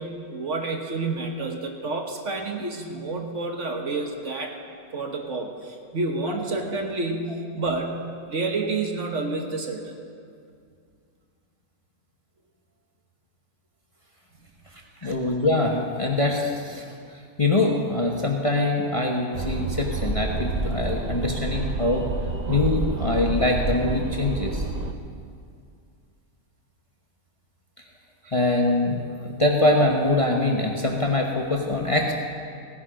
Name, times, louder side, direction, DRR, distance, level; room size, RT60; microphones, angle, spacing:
voice 1, 0.0-4.5 4.9-10.0 15.0-15.1 28.2-28.4, right 3 dB, 55° right, 3 dB, 1.5 m, -29 dB
voice 2, 15.0-16.8 17.4-22.1 22.5-24.6 28.3-32.1, left 2 dB, 25° left, 0 dB, 1.0 m, -23 dB
sound 1, 19.3-24.9, right 3 dB, 40° right, 0.7 m, -28 dB
16.5 x 10.0 x 5.0 m, 2.3 s
omnidirectional pair, 1.5 m